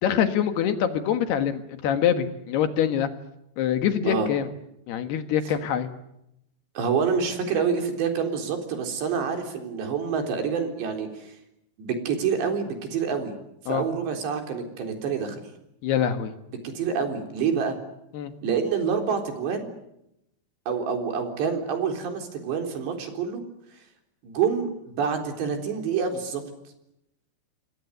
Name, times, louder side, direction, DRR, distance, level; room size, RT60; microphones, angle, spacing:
voice 1, 0.0-3.1 3.6-4.5 4.9-5.9 13.7-13.8 15.8-16.3 18.1-18.3, left 9 dB, 70° left, 8 dB, 3.5 m, -24 dB
voice 2, 6.8-11.4 11.8-13.3 13.7-15.4 16.6-17.8 18.4-19.8 20.7-23.4 24.2-26.4, right 6 dB, 75° right, 4 dB, 6.0 m, -27 dB
28.5 x 22.5 x 8.1 m, 0.81 s
omnidirectional pair, 5.1 m